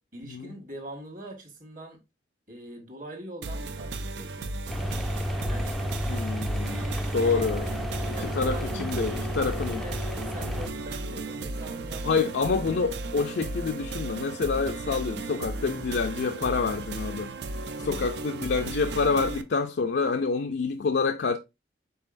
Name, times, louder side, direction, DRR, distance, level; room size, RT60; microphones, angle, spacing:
voice 1, 0.1-2.0 2.5-5.8 6.3-6.9 8.1-12.3 17.7-18.2, right 1 dB, 50° right, 1.5 m, -43 dB
sound 1, 3.4-19.4, right 2 dB, 75° right, 0.5 m, -35 dB
sound 2, 4.7-10.7, equal, ahead, 0.3 m, -32 dB
voice 2, 6.1-6.8 7.1-7.7 8.2-9.8 10.5-10.6 12.0-17.3 17.8-21.4, left 4 dB, 75° left, 0.4 m, -27 dB
5.5 x 3.8 x 2.5 m
head